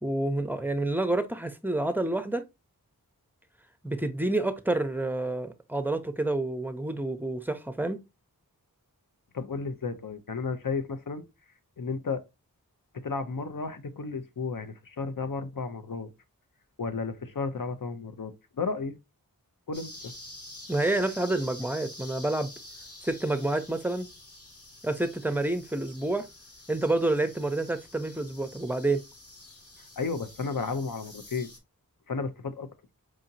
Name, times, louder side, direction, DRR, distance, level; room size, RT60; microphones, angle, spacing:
voice 1, 0.0-2.4 3.8-8.0 20.7-22.5 23.0-24.1 24.8-26.3 26.7-29.0, right 2 dB, 5° right, 0.6 m, -28 dB
voice 2, 9.3-11.2 11.8-12.2 13.0-16.1 16.8-19.0 19.7-20.1 30.0-31.5 32.1-32.7, left 4 dB, 70° left, 0.6 m, -33 dB
sound 1, 19.7-31.6, left 1 dB, 45° left, 1.1 m, -48 dB
4.8 x 2.8 x 2.6 m
wide cardioid pair, 40°, 35 cm